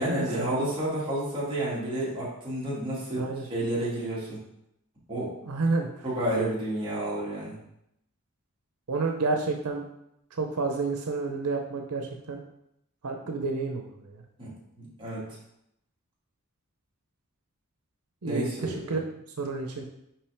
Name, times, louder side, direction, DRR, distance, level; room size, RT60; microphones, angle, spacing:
voice 1, 0.0-4.4 5.1-5.3 6.0-7.6 14.4-15.2 18.2-18.8, right 1 dB, 25° right, -7 dB, 2.2 m, -30 dB
voice 2, 5.4-5.9 8.9-9.9 10.3-12.4 13.0-14.2 18.2-19.0 19.4-19.9, right 3 dB, 85° right, 3 dB, 0.7 m, -30 dB
5.8 x 5.0 x 3.5 m, 0.80 s
head